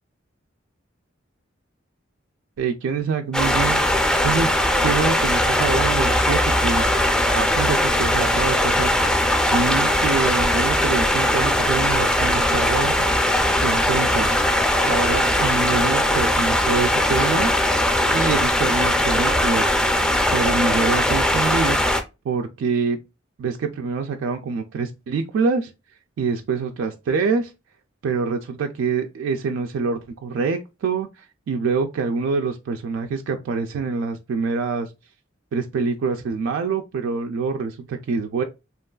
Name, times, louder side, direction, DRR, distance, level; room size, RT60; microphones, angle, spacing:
voice 1, 2.6-3.8 4.2-4.5 4.8-6.9 7.3-8.9 9.5-13.1 13.6-14.3 14.8-17.5 18.1-19.7 20.3-21.8 22.3-23.0 23.4-25.7 26.2-27.5 28.0-34.9 35.5-38.4, right 5 dB, 75° right, 0.3 m, -25 dB
sound 1, 3.3-22.0, left 1 dB, 5° left, 0.4 m, -20 dB
2.9 x 2.3 x 2.2 m
head